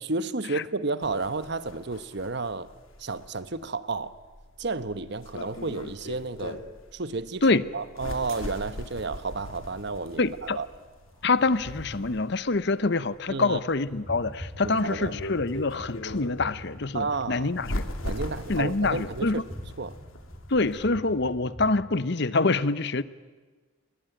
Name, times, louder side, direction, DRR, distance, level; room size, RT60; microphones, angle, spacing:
voice 1, 0.0-2.7 3.0-4.2 4.6-6.6 6.9-7.5 7.7-10.7 13.3-13.6 14.6-15.2 16.9-17.5 18.0-19.4 19.8-20.0, right 3 dB, 55° right, 1.1 m, -32 dB
sound 1, 1.0-20.9, left 1 dB, 75° left, 2.6 m, -40 dB
sound 2, 8.2-12.3, right 1 dB, 85° right, 5.8 m, -49 dB
voice 2, 10.2-10.6 11.2-17.8 18.5-19.4 20.5-23.0, left 3 dB, 55° left, 0.9 m, -25 dB
sound 3, 13.9-21.9, equal, 10° left, 3.4 m, -43 dB
29.0 x 22.0 x 9.2 m
head